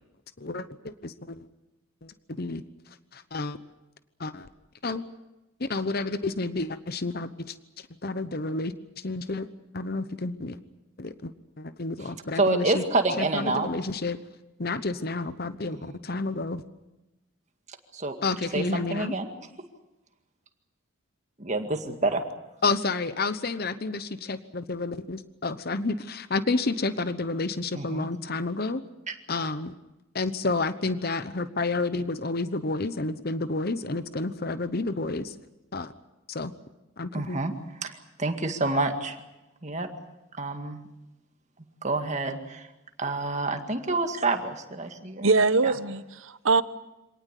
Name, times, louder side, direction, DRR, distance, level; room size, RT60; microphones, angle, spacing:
voice 1, 0.4-1.5 2.0-2.6 3.1-3.6 4.2-4.5 4.8-5.1 5.6-9.5 9.7-10.6 11.0-12.8 13.2-14.2 14.6-16.6 18.2-19.1 22.6-28.8 29.3-29.7 30.1-35.3 35.7-35.9 36.3-36.5 37.0-37.4, left 3 dB, 45° left, 13 dB, 0.9 m, -30 dB
voice 2, 12.4-13.7 15.9-16.0 17.9-18.2 18.5-19.3 21.4-22.2 27.8-28.1 29.1-29.2 37.1-37.5 37.8-37.9 38.2-39.2 39.6-39.9 40.4-40.8 41.8-42.7 43.0-45.3 45.6-45.7, right 2 dB, 35° right, 6 dB, 2.0 m, -27 dB
voice 3, 45.2-46.6, right 4 dB, 75° right, 14 dB, 0.9 m, -22 dB
25.5 x 18.5 x 8.3 m, 1.0 s
head